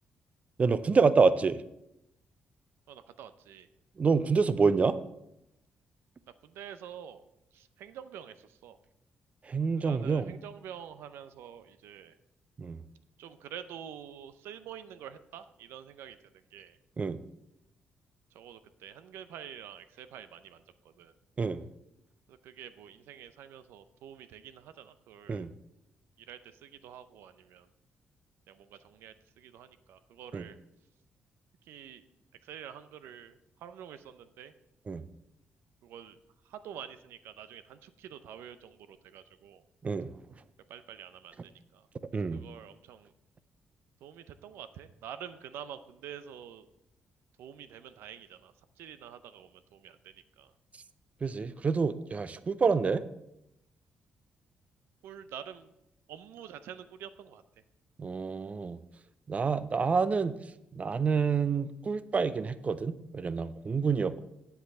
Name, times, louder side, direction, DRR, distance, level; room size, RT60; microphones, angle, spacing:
voice 1, 0.6-1.6 4.0-5.0 9.4-10.3 12.6-12.8 17.0-17.2 21.4-21.6 25.3-25.5 30.3-30.4 34.9-35.0 39.8-40.1 42.1-42.4 51.2-53.0 58.0-58.8 59.3-60.3 60.7-64.2, right 5 dB, 35° right, 14 dB, 0.5 m, -27 dB
voice 2, 2.9-3.7 6.4-7.2 7.5-8.8 9.7-12.2 13.2-16.8 18.3-21.1 22.3-25.4 26.2-27.7 28.5-30.6 31.6-32.1 32.4-34.5 35.8-36.2 36.4-39.6 40.7-41.9 42.2-43.1 44.0-46.7 47.4-50.5 55.0-55.7 56.1-57.4, right 9 dB, 85° right, 11 dB, 0.6 m, -47 dB
8.3 x 7.9 x 4.2 m, 0.85 s
cardioid pair, 80°, 4 cm